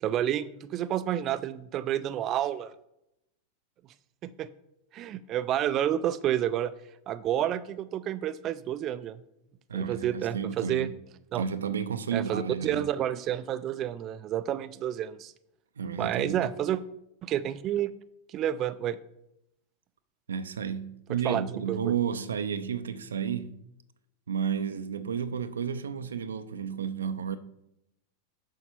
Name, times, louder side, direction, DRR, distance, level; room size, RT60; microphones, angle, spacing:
voice 1, 0.0-2.7 4.2-4.5 4.9-6.7 7.1-9.2 9.7-10.9 11.3-11.4 12.1-15.3 16.0-16.8 17.2-17.9 18.3-19.0 21.1-21.8, right 11 dB, 40° right, 0.4 m, -30 dB
voice 2, 9.7-11.0 11.4-12.9 15.8-16.5 20.3-23.6 24.3-27.4, right 7 dB, 85° right, 0.5 m, -32 dB
6.9 x 5.6 x 4.5 m
hypercardioid pair, 105°, 0 cm